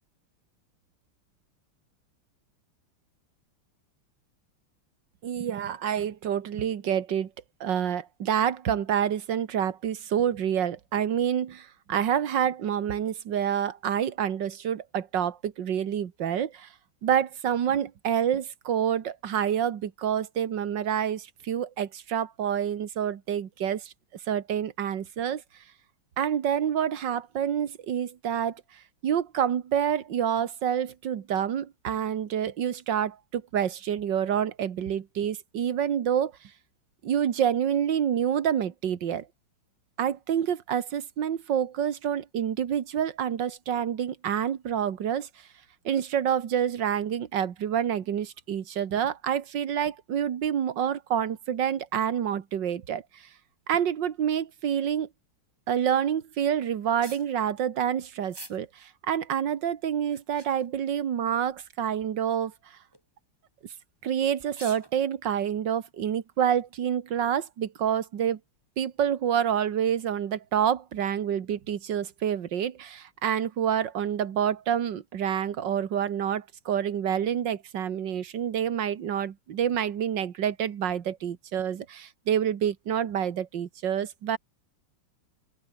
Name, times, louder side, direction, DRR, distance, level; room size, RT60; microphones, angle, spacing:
voice 1, 5.2-7.3 7.6-16.7 17.0-23.9 24.3-25.4 26.2-28.6 29.0-36.3 37.0-39.3 40.0-45.3 45.9-53.2 53.7-55.1 55.7-62.5 64.0-68.4 68.8-84.4, right 9 dB, 60° right, 2.0 m, -28 dB
sound 1, 56.9-57.3 58.3-58.6 59.1-59.2 60.0-60.7 61.4-61.7 62.0-62.1 62.8-63.0 64.0-64.1 64.4-65.0, equal, 10° right, 7.8 m, -46 dB
open air
omnidirectional pair, 2.4 m